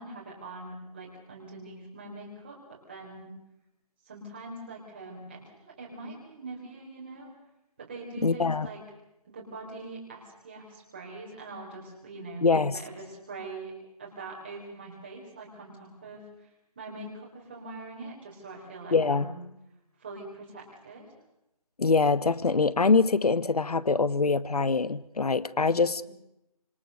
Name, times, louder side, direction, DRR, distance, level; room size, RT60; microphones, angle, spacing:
voice 1, 0.0-3.3 4.1-7.3 7.8-8.8 9.2-13.7 14.0-16.5 16.8-19.4 20.0-21.1 26.0-26.1, right 2 dB, 15° right, -2 dB, 4.0 m, -43 dB
voice 2, 8.2-8.7 12.4-12.8 18.9-19.3 21.8-26.0, left 4 dB, 80° left, 17 dB, 1.1 m, -24 dB
26.5 x 21.0 x 6.4 m, 0.88 s
figure-of-eight pair, 180°, 19 cm